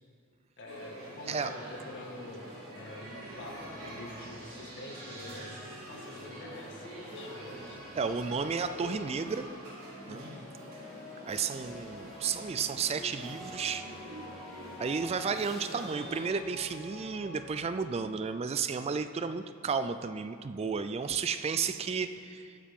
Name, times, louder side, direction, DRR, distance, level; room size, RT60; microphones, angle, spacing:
voice 1, 0.6-5.6 5.9-7.9 10.0-10.4, left 1 dB, 60° left, 0 dB, 1.8 m, -46 dB
sound 1, 0.7-16.3, right 1 dB, 70° right, 3.6 m, -46 dB
sound 2, 1.6-9.5 10.1-18.0, left 1 dB, ahead, 2.3 m, -49 dB
voice 2, 7.9-9.5 10.1-10.3 11.3-13.9 14.8-22.6, right 5 dB, 30° right, 11 dB, 0.3 m, -33 dB
22.5 x 8.7 x 3.7 m, 2.5 s
head